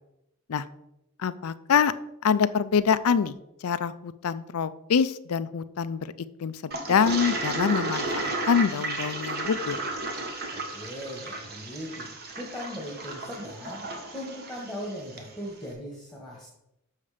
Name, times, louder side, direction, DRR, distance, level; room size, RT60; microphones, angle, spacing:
voice 1, 1.2-1.9 2.2-3.3 3.6-6.1 6.4-9.8, left 6 dB, 75° left, 14 dB, 0.4 m, -25 dB
Toilet flush, 6.7-15.3, right 2 dB, 45° right, 1.3 m, -33 dB
voice 2, 10.5-16.5, equal, ahead, -3 dB, 1.4 m, -39 dB
7.1 x 6.4 x 5.0 m, 0.86 s
head